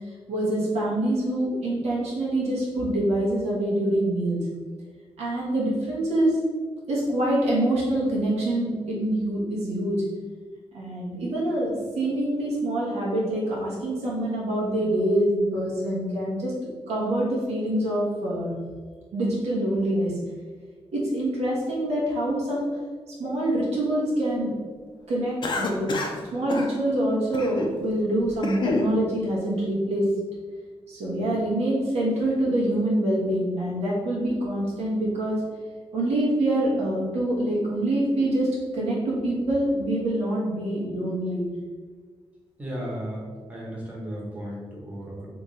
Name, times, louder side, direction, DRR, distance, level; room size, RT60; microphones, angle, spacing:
voice 1, 0.3-4.5 5.2-6.4 6.9-10.0 10.7-16.5 16.9-18.5 19.1-20.1 20.9-22.7 23.2-24.5 25.1-25.9 26.3-30.1 30.9-35.4 35.9-38.5 38.7-41.5, right 1 dB, 90° right, -5 dB, 1.4 m, -25 dB
Cough, 25.4-26.2 26.5-26.7 27.3-27.8 28.2-28.9, left 2 dB, 45° left, 0.6 m, -28 dB
voice 2, 42.6-43.2 43.5-45.3, equal, 15° right, -5 dB, 1.1 m, -34 dB
3.5 x 2.9 x 4.1 m, 1.5 s
wide cardioid pair, 130°, 11 cm